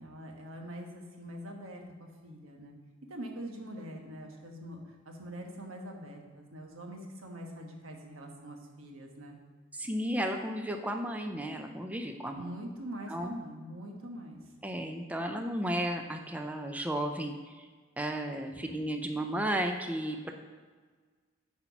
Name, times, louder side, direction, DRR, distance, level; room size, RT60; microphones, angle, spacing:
voice 1, 0.0-2.7 3.1-9.4 12.3-14.6, equal, 85° right, 2 dB, 1.2 m, -44 dB
voice 2, 9.7-12.4 13.1-13.3 14.6-17.7 18.0-20.3, right 1 dB, 5° right, 4 dB, 0.4 m, -34 dB
8.1 x 4.4 x 5.8 m, 1.5 s
head